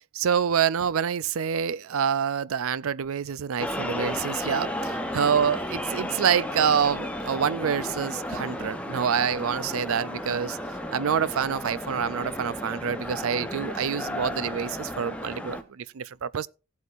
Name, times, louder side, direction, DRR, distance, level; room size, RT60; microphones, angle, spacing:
voice 1, 0.1-10.6 10.9-16.5, right 7 dB, 70° right, 0.4 m, -27 dB
sound 1, 3.6-15.6, left 1 dB, 5° left, 0.8 m, -33 dB
17.0 x 8.1 x 2.5 m
head